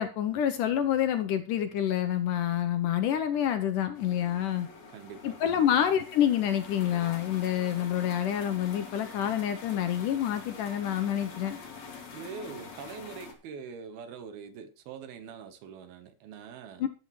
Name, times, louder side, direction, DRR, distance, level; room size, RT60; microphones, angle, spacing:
voice 1, 0.0-4.7 5.2-11.6 16.8-16.9, left 10 dB, 70° left, 8 dB, 2.1 m, -27 dB
sound 1, 3.9-13.3, left 5 dB, 50° left, 3.3 m, -46 dB
voice 2, 4.9-5.6 12.1-16.9, right 6 dB, 80° right, 10 dB, 3.1 m, -43 dB
14.0 x 11.5 x 3.2 m, 0.34 s
omnidirectional pair, 4.4 m